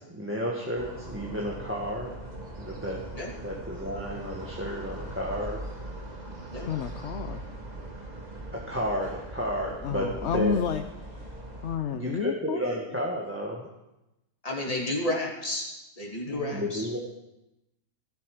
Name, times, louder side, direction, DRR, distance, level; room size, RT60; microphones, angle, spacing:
voice 1, 0.0-2.1 2.6-3.0 3.4-5.6 8.5-10.6 11.9-13.7 16.5-17.0, equal, 10° right, -3 dB, 1.7 m, -32 dB
sound 1, 0.8-11.8, right 2 dB, 35° right, 2.0 m, -40 dB
voice 2, 6.6-7.4 9.8-10.8 11.1-11.3 11.6-12.6 14.7-14.9 16.3-16.7, left 7 dB, 65° left, 7 dB, 1.0 m, -31 dB
voice 3, 14.4-15.7 16.0-16.9, left 1 dB, 30° left, -2 dB, 2.8 m, -31 dB
15.5 x 13.5 x 5.0 m, 0.92 s
omnidirectional pair, 1.3 m